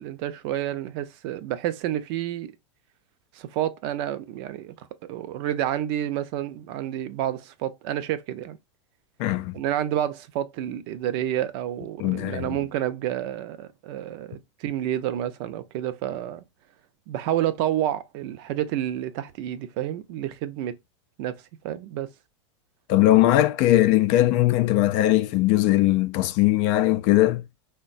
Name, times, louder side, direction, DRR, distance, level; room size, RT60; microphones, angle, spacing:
voice 1, 0.0-2.6 3.3-8.6 9.5-16.4 17.1-20.8 21.2-22.1, right 11 dB, 55° right, 0.5 m, -29 dB
voice 2, 9.2-9.5 12.0-12.6 22.9-27.4, left 15 dB, 50° left, 0.4 m, -20 dB
3.6 x 2.1 x 2.5 m
hypercardioid pair, 120°, 16 cm